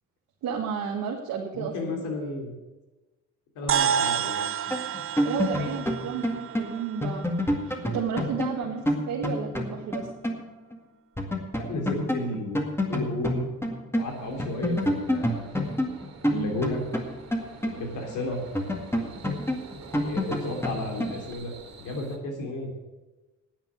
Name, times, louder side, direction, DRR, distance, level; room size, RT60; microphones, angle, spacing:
voice 1, 0.4-2.0 5.2-7.2 7.6-10.1 16.3-16.6, right 6 dB, 90° right, -2 dB, 1.6 m, -32 dB
voice 2, 1.5-2.5 3.5-4.5 11.6-13.5 13.9-15.4 16.3-16.9 17.6-18.4 20.0-22.7, left 2 dB, 85° left, 2 dB, 3.3 m, -33 dB
sound 1, 3.7-8.3, right 8 dB, 45° right, 0.6 m, -30 dB
sound 2, 4.7-10.5 10.7-10.8 11.2-14.1 14.4-18.1 18.6-21.3, left 1 dB, 10° left, 2.0 m, -28 dB
sound 3, 14.0-22.2, right 5 dB, 60° right, 2.6 m, -47 dB
9.7 x 8.7 x 7.8 m, 1.1 s
cardioid pair, 90°, 30 cm